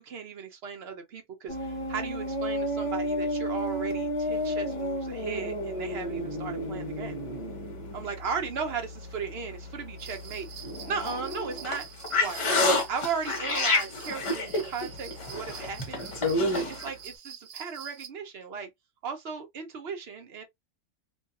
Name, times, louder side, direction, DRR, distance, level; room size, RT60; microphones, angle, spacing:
voice 1, 0.0-7.2 7.9-10.5 10.9-11.9 12.2-12.6 12.9-16.0 16.4-18.7 19.0-20.4, right 6 dB, 60° right, 1.0 m, -36 dB
sound 1, 1.5-16.9, left 1 dB, 40° left, 0.5 m, -31 dB
sound 2, 10.0-18.1, right 8 dB, 80° right, 1.1 m, -46 dB
2.6 x 2.3 x 2.4 m
omnidirectional pair, 1.3 m